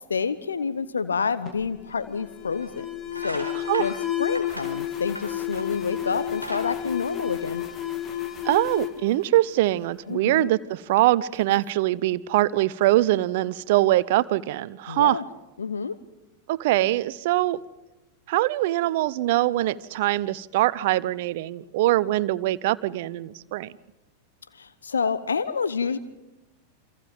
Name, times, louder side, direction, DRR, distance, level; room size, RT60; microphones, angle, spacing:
voice 1, 0.1-2.9 3.2-3.9 4.2-7.7 10.1-10.5 14.9-15.2 15.6-15.9 24.5-26.0, left 5 dB, 70° left, 14 dB, 1.0 m, -28 dB
Alarm, 1.4-10.0, left 12 dB, 25° left, 2.1 m, -32 dB
sound 1, 1.8-1.9 2.5-2.7 3.1-5.8 6.2-7.8, equal, 90° left, 4.3 m, -38 dB
voice 2, 8.4-15.2 16.5-17.6 18.3-23.7, right 16 dB, 50° right, 19 dB, 0.8 m, -23 dB
28.0 x 26.0 x 5.3 m, 1.0 s
figure-of-eight pair, 90°, 0 cm